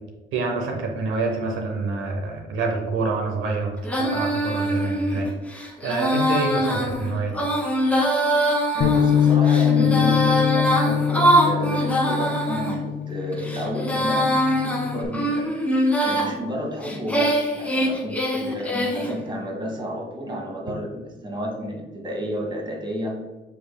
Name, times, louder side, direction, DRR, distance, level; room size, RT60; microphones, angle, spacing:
voice 1, 0.3-5.3 5.8-7.5, right 3 dB, 85° right, 2 dB, 0.7 m, -27 dB
Female singing, 3.8-12.7 13.3-16.3 16.8-19.1, equal, 5° left, 1.2 m, -23 dB
voice 2, 8.7-15.7 16.0-23.1, equal, 25° right, -1 dB, 1.3 m, -31 dB
Bass guitar, 8.8-15.1, left 8 dB, 60° left, 0.7 m, -23 dB
7.0 x 3.3 x 2.2 m, 1.2 s
cardioid pair, 90°, 20 cm